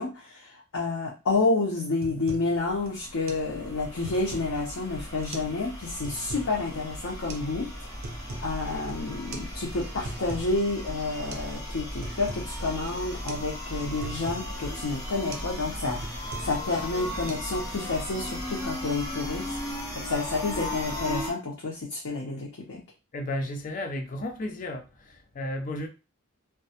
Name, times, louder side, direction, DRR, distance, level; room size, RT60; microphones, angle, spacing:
voice 1, 0.0-7.7 8.4-19.8 20.1-22.8, left 3 dB, 85° left, 0.6 m, -29 dB
sound 1, 1.3-1.5 1.8-2.5 2.9-3.0 3.3-3.5 3.8-4.6 5.2-5.6 5.8-6.5 7.3-7.5 7.8-8.5 8.8-8.9 9.3-9.5 9.8-10.5 10.9-11.0 11.3-11.5 11.8-12.5 12.9-13.0 13.3-13.5 13.8-14.5 14.9-15.0 15.3-15.5 15.8-16.6 16.9-17.3, right 2 dB, 70° right, 0.5 m, -41 dB
sound 2, 2.6-21.3, left 1 dB, 15° left, 0.8 m, -37 dB
voice 2, 23.1-25.9, left 1 dB, 40° left, 0.4 m, -33 dB
2.2 x 2.0 x 2.7 m
head